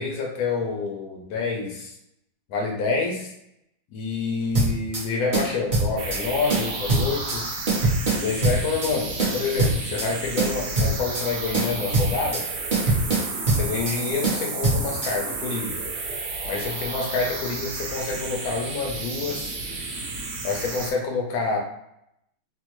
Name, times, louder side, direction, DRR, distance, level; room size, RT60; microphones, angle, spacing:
voice 1, 0.0-1.9 2.5-3.3 3.9-7.6 8.2-12.4 13.5-15.8 16.5-19.5 20.4-21.6, left 4 dB, 75° left, -1 dB, 0.8 m, -27 dB
sound 1, 4.5-5.1 5.3-6.2 6.5-7.4 7.7-8.9 9.2-10.1 10.4-11.3 11.5-12.4 12.7-14.0 14.2-15.1, right 2 dB, 85° right, 0.4 m, -23 dB
sound 2, 6.0-20.9, right 3 dB, 70° right, 1.1 m, -32 dB
3.5 x 2.1 x 3.0 m, 0.79 s
omnidirectional pair, 2.3 m